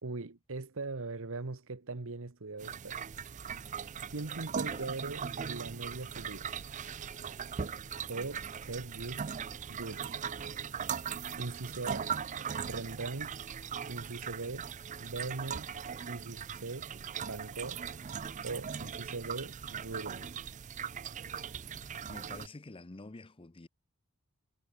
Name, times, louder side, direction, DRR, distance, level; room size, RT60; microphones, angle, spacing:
voice 1, 0.0-3.1 4.1-6.5 8.0-9.3 9.7-10.2 11.4-12.2 12.5-13.4 13.9-14.7 15.0-15.7 16.1-16.9 17.2-17.9 18.4-20.4, right 3 dB, 65° right, 1.2 m, -40 dB
sound 1, 2.6-22.5, right 7 dB, 35° right, 0.5 m, -39 dB
voice 2, 4.6-4.9 22.1-23.7, left 2 dB, 25° left, 0.7 m, -48 dB
head